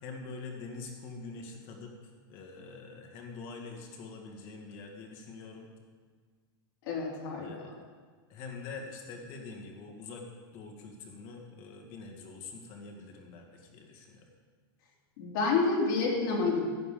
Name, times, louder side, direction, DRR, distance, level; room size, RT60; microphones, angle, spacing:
voice 1, 0.0-1.9 2.3-5.7 7.4-7.8 8.3-10.2 10.5-14.3, left 4 dB, 40° left, 2 dB, 2.0 m, -45 dB
voice 2, 6.8-7.5 15.2-16.6, left 4 dB, 55° left, -3 dB, 3.1 m, -28 dB
14.0 x 9.6 x 3.8 m, 1.6 s
supercardioid pair, 155°, 13 cm